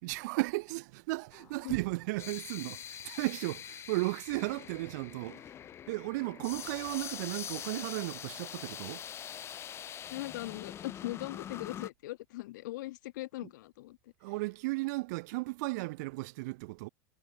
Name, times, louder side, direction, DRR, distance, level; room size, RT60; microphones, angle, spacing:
voice 1, 0.0-5.4 5.9-9.0 14.2-16.9, right 23 dB, 65° right, 2.2 m, -35 dB
sound 1, 1.3-11.9, left 10 dB, 25° left, 4.1 m, -44 dB
voice 2, 10.1-14.0, left 18 dB, 80° left, 4.7 m, -40 dB
supercardioid pair, 155°, 10 cm